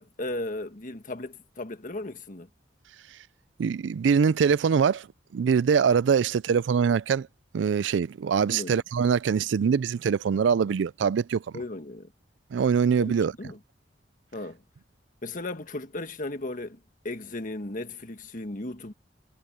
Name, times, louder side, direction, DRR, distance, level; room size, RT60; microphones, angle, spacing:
voice 1, 0.0-2.5 8.5-8.8 11.5-12.1 13.0-13.1 13.4-13.6 14.3-14.6 15.2-16.8 17.0-18.9, left 2 dB, 45° left, 1.6 m, -36 dB
voice 2, 3.6-5.1 5.3-7.3 7.5-11.4 12.5-13.3, right 6 dB, 85° right, 0.4 m, -23 dB
head